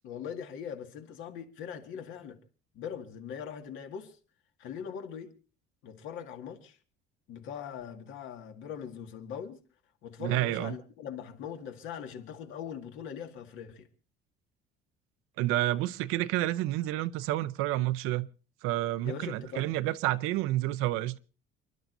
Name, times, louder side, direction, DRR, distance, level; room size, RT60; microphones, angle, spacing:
voice 1, 0.0-2.4 2.7-4.2 4.6-5.4 5.8-6.8 7.3-9.6 10.0-13.9 19.0-19.7, left 8 dB, 65° left, 2.1 m, -41 dB
voice 2, 10.2-10.7 15.4-18.3 18.6-21.2, right 15 dB, 85° right, 0.7 m, -29 dB
29.5 x 11.5 x 2.7 m
cardioid pair, 155°, 21 cm